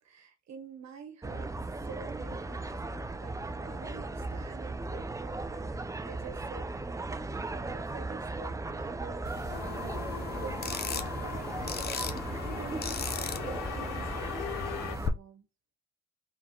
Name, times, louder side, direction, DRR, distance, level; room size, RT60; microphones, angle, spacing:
voice 1, 0.0-6.7 7.3-9.9 10.3-15.5, right 5 dB, 60° right, 1.2 m, -48 dB
sound 1, 1.2-15.1, right 2 dB, 10° right, 0.4 m, -37 dB
sound 2, 9.2-15.1, left 6 dB, 35° left, 0.6 m, -39 dB
sound 3, 9.5-15.0, left 9 dB, 80° left, 0.6 m, -40 dB
3.6 x 2.8 x 3.7 m
cardioid pair, 90°, 30 cm